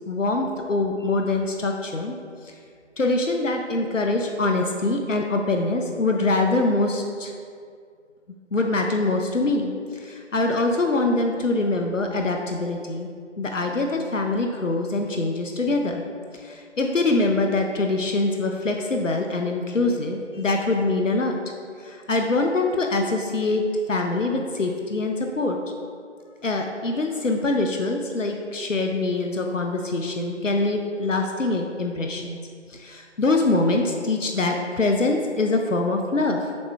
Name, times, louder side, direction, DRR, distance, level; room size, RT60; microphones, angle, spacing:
voice 1, 0.1-2.2 2.4-2.5 3.0-7.3 8.5-13.1 13.4-16.0 16.3-21.4 21.8-23.6 23.9-25.6 26.4-32.4 32.7-36.5, left 2 dB, 80° left, 3 dB, 0.7 m, -24 dB
7.1 x 3.2 x 4.7 m, 2.2 s
figure-of-eight pair, 170°, 37 cm